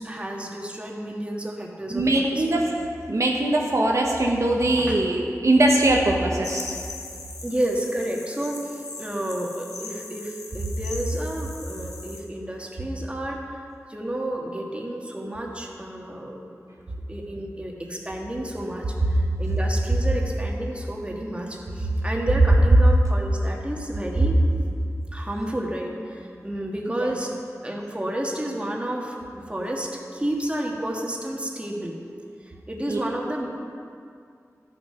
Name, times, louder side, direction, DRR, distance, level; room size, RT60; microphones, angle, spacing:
voice 1, 0.0-2.5 4.8-5.0 7.4-13.6 13.9-16.5 17.1-24.4 25.1-27.3 27.6-31.9 32.4-33.5, right 1 dB, 20° right, -1 dB, 1.7 m, -31 dB
voice 2, 1.9-2.6 3.1-6.8 32.9-33.0, right 1 dB, 60° right, -1 dB, 1.1 m, -21 dB
sound 1, 6.4-12.2, left 3 dB, 80° left, 1.4 m, -39 dB
12.0 x 6.7 x 5.7 m, 2.3 s
wide cardioid pair, 60°, 6 cm